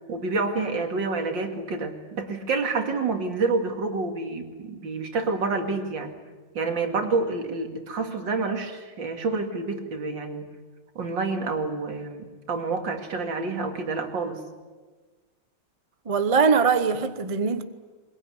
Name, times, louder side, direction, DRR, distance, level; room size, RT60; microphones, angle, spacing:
voice 1, 0.1-6.1 6.5-10.5 11.0-14.4, right 3 dB, 60° right, 2.9 m, -28 dB
voice 2, 16.1-17.6, right 5 dB, 30° right, 0.6 m, -21 dB
22.0 x 21.5 x 9.8 m
omnidirectional pair, 2.3 m